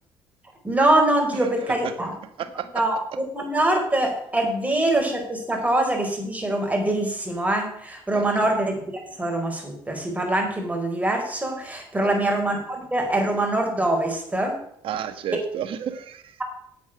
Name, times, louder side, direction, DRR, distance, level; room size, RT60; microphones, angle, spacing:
voice 1, 0.6-2.1 2.7-3.0 3.3-14.5, right 1 dB, 15° right, 2 dB, 4.8 m, -24 dB
voice 2, 1.3-1.9 2.4-2.8 8.1-8.5 12.0-12.2 14.8-16.4, right 8 dB, 65° right, 10 dB, 1.6 m, -32 dB
8.7 x 8.6 x 7.7 m, 0.70 s
supercardioid pair, 70°, 10 cm